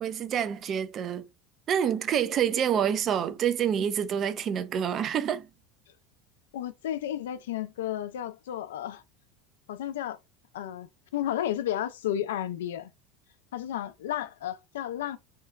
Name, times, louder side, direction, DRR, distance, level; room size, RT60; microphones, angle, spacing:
voice 1, 0.0-1.2 1.7-5.5, right 8 dB, 40° right, 0.4 m, -27 dB
voice 2, 6.5-9.0 9.7-10.2 10.5-12.9 13.5-15.2, left 11 dB, 85° left, 0.3 m, -32 dB
2.9 x 2.3 x 2.3 m
hypercardioid pair, 95°, 0 cm